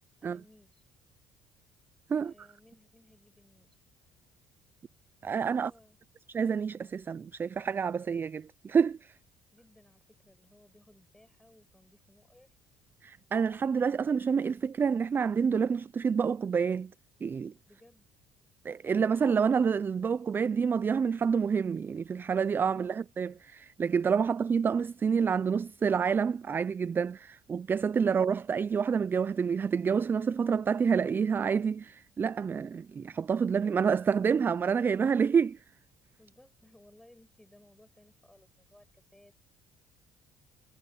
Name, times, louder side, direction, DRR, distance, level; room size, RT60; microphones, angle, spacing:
voice 1, 0.2-0.8 2.2-3.8 5.4-6.0 9.5-12.5 17.7-18.1 36.2-39.5, left 1 dB, 5° left, 6.4 m, -61 dB
voice 2, 2.1-2.5 5.2-5.7 6.3-9.1 13.0-16.9 17.2-17.5 18.6-35.6, right 6 dB, 25° right, 0.3 m, -28 dB
cardioid pair, 110°, 8 cm